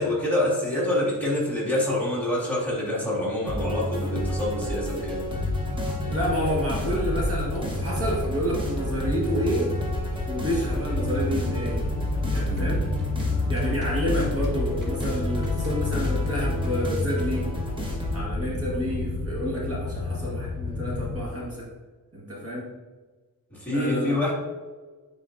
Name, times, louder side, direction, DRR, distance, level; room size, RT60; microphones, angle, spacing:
voice 1, 0.0-5.3 12.5-12.8 18.4-18.6 23.6-24.3, left 1 dB, 5° left, -8 dB, 1.8 m, -26 dB
sound 1, 3.5-18.2, equal, 15° right, 0.9 m, -31 dB
sound 2, 5.3-21.3, left 3 dB, 60° left, 0.6 m, -31 dB
voice 2, 6.0-9.7 10.3-11.9 12.3-12.8 13.5-17.5 18.1-21.7 22.1-22.7 23.7-24.3, equal, 40° right, -5 dB, 1.5 m, -29 dB
sound 3, 12.4-17.3, right 1 dB, 60° right, 1.5 m, -43 dB
9.5 x 4.0 x 2.5 m, 1.3 s
wide cardioid pair, 165°, 35 cm